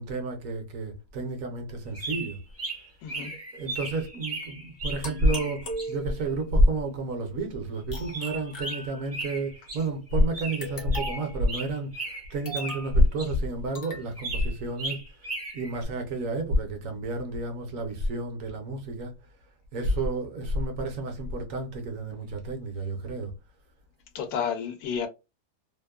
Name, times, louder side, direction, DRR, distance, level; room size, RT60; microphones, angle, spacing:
voice 1, 0.0-2.4 3.5-15.0 15.5-19.1 19.7-23.3, right 1 dB, 65° right, 0.9 m, -29 dB
sound 1, 1.9-5.9 8.1-9.8 10.1-12.9 13.2-13.3 14.2-15.9, right 2 dB, 15° right, 0.4 m, -36 dB
voice 2, 3.0-3.3 24.1-25.1, left 7 dB, 75° left, 1.0 m, -31 dB
sound 2, 5.0-6.4 7.9-9.3 10.6-11.4 12.4-13.0 13.7-14.1, equal, 50° left, 0.7 m, -39 dB
2.8 x 2.0 x 2.2 m
omnidirectional pair, 1.8 m